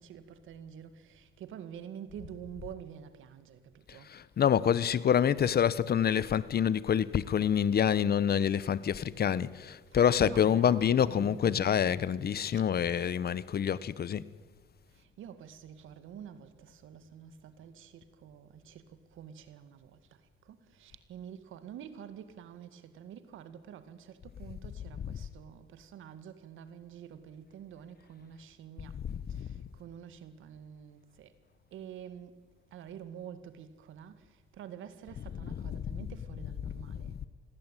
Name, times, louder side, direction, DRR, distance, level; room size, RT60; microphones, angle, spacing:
voice 1, 0.0-4.1 9.9-11.7 12.5-12.6 14.9-20.0 20.4-29.0 29.3-31.3 31.7-32.3 32.7-37.1, right 9 dB, 80° right, 2.1 m, -48 dB
voice 2, 3.9-14.2 25.0-25.2 28.9-29.5 35.3-36.0 36.4-37.1, left 8 dB, 50° left, 1.1 m, -27 dB
26.5 x 21.0 x 9.2 m
cardioid pair, 90°, 20 cm